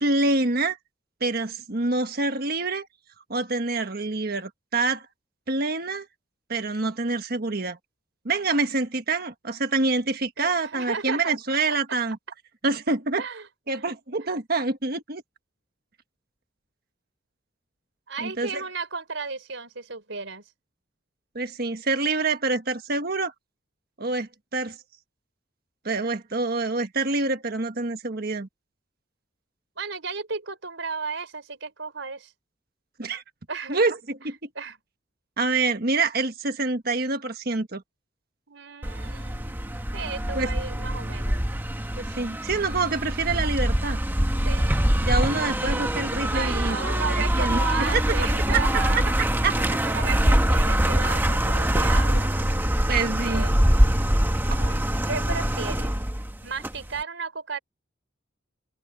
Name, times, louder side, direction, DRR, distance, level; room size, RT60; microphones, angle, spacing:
voice 1, 0.0-0.8 1.2-2.9 3.3-5.0 5.5-6.1 6.5-7.8 8.2-12.2 12.6-13.2 13.7-15.2 18.2-18.6 21.3-23.3 24.0-24.8 25.8-28.5 33.0-33.2 33.7-34.3 35.4-37.8 40.3-40.5 42.0-44.0 45.0-46.8 47.1-48.0 48.5-48.6 48.9-49.0 49.4-49.8 52.9-53.5, right 3 dB, 55° right, 1.5 m, -26 dB
voice 2, 10.4-11.3 13.2-13.5 18.1-20.4 29.8-32.3 33.5-33.9 34.6-34.8 38.5-39.6 39.9-41.4 44.4-44.9 46.3-49.1 49.6-52.3 53.2-53.6 54.5-54.8 55.1-55.9 56.4-57.6, right 4 dB, 75° right, 4.3 m, -34 dB
sound 1, 38.8-57.0, equal, 10° right, 1.3 m, -24 dB
open air
head